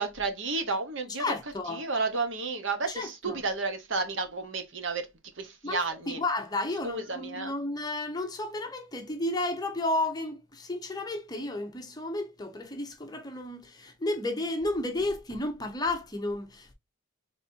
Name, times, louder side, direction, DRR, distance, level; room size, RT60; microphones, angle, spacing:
voice 1, 0.0-1.2 1.7-5.1 5.4-6.2 6.8-7.5, right 3 dB, 65° right, 1.1 m, -31 dB
voice 2, 1.2-1.8 2.9-3.4 5.6-16.7, left 2 dB, 20° left, 0.8 m, -32 dB
5.1 x 3.4 x 2.8 m
head